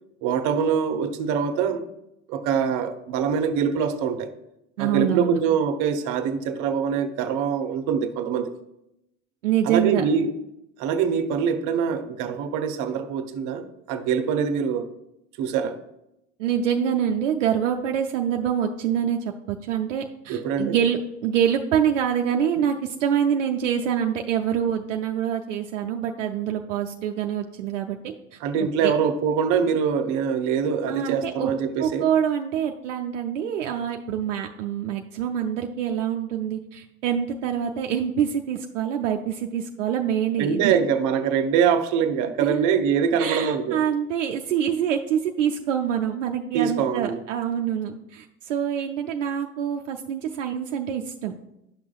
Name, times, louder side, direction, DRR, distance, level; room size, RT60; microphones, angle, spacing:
voice 1, 0.2-1.8 2.3-4.3 4.8-8.5 9.6-10.3 10.8-14.9 15.4-15.8 20.3-20.8 28.4-32.1 40.4-43.8 46.5-47.2, right 7 dB, 55° right, 9 dB, 0.8 m, -24 dB
voice 2, 4.8-5.4 9.4-10.0 16.4-28.4 28.8-28.9 30.9-31.5 31.8-40.8 42.4-42.7 43.2-51.3, right 9 dB, 75° right, 3 dB, 0.5 m, -25 dB
10.0 x 6.0 x 2.3 m, 0.84 s
figure-of-eight pair, 60°, 38 cm